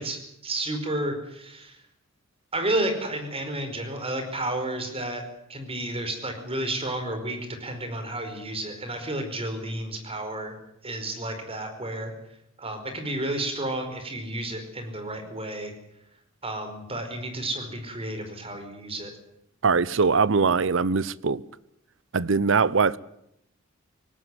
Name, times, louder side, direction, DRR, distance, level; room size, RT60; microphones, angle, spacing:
voice 1, 0.0-1.8 2.5-5.2 5.5-10.5 10.8-12.1 12.6-15.7 16.4-19.1, right 1 dB, 30° right, 4.8 m, -31 dB
voice 2, 19.6-21.4 22.1-23.0, right 4 dB, 70° right, 0.7 m, -22 dB
19.0 x 18.0 x 9.6 m
head